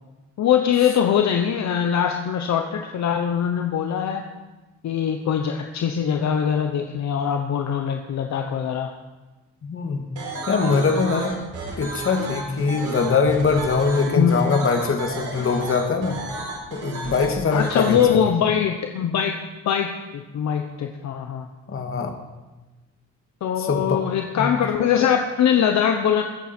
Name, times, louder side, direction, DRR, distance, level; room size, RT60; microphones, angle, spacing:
voice 1, 0.4-4.3 4.8-8.9 14.1-14.3 17.5-19.4 19.6-21.5 23.4-26.2, left 8 dB, 65° left, 4 dB, 1.1 m, -22 dB
voice 2, 9.6-10.1 10.5-11.4 11.8-16.2 16.7-18.3 21.7-22.2 23.6-24.0 24.4-24.5, left 4 dB, 45° left, 5 dB, 2.0 m, -22 dB
sound 1, 10.2-18.0, right 3 dB, 80° right, 3.9 m, -32 dB
21.5 x 8.4 x 4.5 m, 1.1 s
cardioid pair, 90°, 30 cm